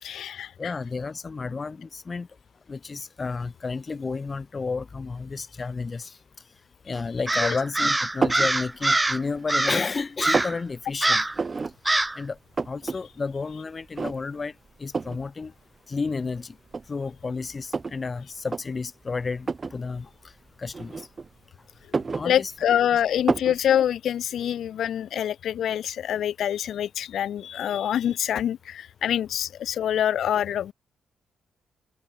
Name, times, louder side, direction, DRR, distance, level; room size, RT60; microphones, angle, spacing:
voice 1, 0.0-0.7 7.4-7.6 22.2-30.7, left 10 dB, 70° left, 1.8 m, -25 dB
voice 2, 0.6-2.3 2.7-6.2 6.8-11.2 12.2-12.4 12.6-14.5 14.8-15.5 15.9-16.6 16.9-20.1 20.6-21.1 22.1-22.5, left 4 dB, 30° left, 4.7 m, -31 dB
Crow, 7.3-9.2 9.5-9.9 10.2-10.6 11.0-11.4 11.9-12.2, right 2 dB, 15° right, 1.9 m, -24 dB
sound 1, 8.2-8.5 9.1-9.7 10.0-10.6 11.3-11.7 12.1-12.2 12.3-13.0 13.3-13.4 14.0-14.4 14.9-15.2 16.1-16.2 16.7-18.0 18.4-18.6 19.4-19.8 20.7-21.4 21.8-22.8 23.3-23.6, right 4 dB, 30° right, 6.6 m, -28 dB
cardioid pair, 105°, 0 cm